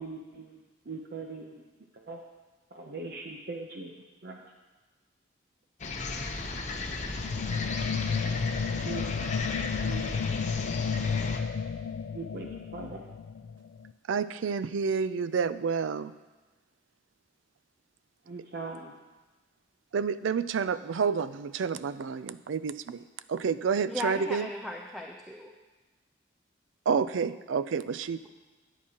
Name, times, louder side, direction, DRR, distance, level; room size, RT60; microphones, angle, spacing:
voice 1, 0.0-1.6 1.9-2.2 2.7-3.9 4.2-4.4 8.8-9.1 9.8-10.1 12.1-13.1 18.3-18.9, right 3 dB, 55° right, 1 dB, 0.7 m, -40 dB
sound 1, 5.8-11.4, left 3 dB, 40° left, 0.8 m, -35 dB
sound 2, 7.1-13.9, left 6 dB, 80° left, 0.3 m, -32 dB
voice 2, 14.1-16.1 19.9-23.0 23.3-24.5 26.9-28.2, right 6 dB, 85° right, 14 dB, 0.4 m, -29 dB
voice 3, 23.9-25.5, left 2 dB, ahead, 0 dB, 0.5 m, -36 dB
13.0 x 9.2 x 2.9 m, 1.2 s
head